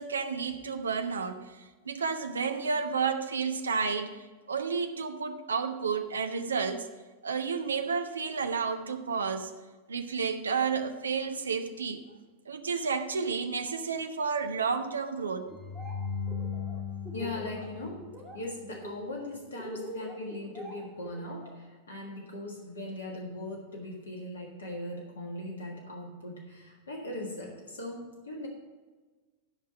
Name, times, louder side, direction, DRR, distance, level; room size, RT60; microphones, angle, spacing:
voice 1, 0.0-6.9 7.2-9.5 9.9-12.0 12.5-15.5, right 5 dB, 70° right, 8 dB, 0.7 m, -31 dB
sound 1, 15.5-18.7, left 6 dB, 20° left, 2.3 m, -38 dB
Laughter, 15.5-15.9 16.2-17.7 18.0-18.4 18.7-21.5, right 2 dB, 15° right, 2.4 m, -43 dB
voice 2, 17.1-18.1 18.3-28.5, left 1 dB, 70° left, 1 dB, 1.5 m, -39 dB
11.5 x 5.6 x 5.7 m, 1.3 s
figure-of-eight pair, 90°, 0 cm